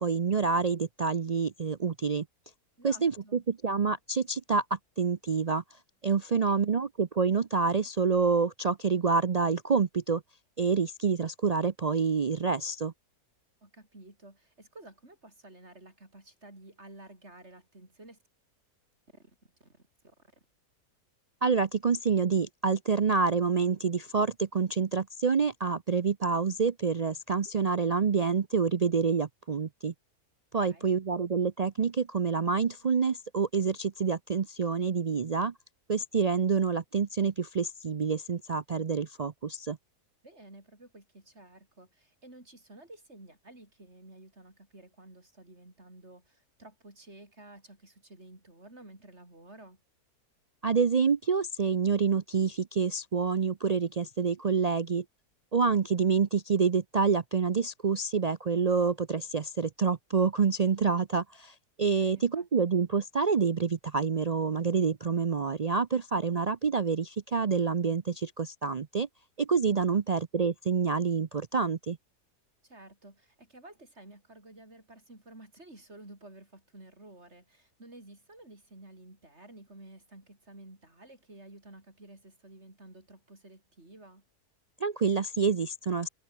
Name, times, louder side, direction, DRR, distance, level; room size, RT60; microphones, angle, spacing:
voice 1, 0.0-2.3 2.8-5.6 6.0-10.2 10.6-12.9 21.4-29.9 30.5-35.5 35.9-39.8 50.6-55.0 55.5-69.1 69.4-72.0 84.8-86.1, right 5 dB, 65° right, 0.4 m, -27 dB
voice 2, 2.8-3.5 6.3-6.7 13.6-18.2 19.1-19.4 19.6-20.3 30.6-30.9 40.2-49.8 62.0-62.5 69.9-70.0 72.6-84.2, right 1 dB, 45° right, 6.9 m, -52 dB
omnidirectional pair, 1.6 m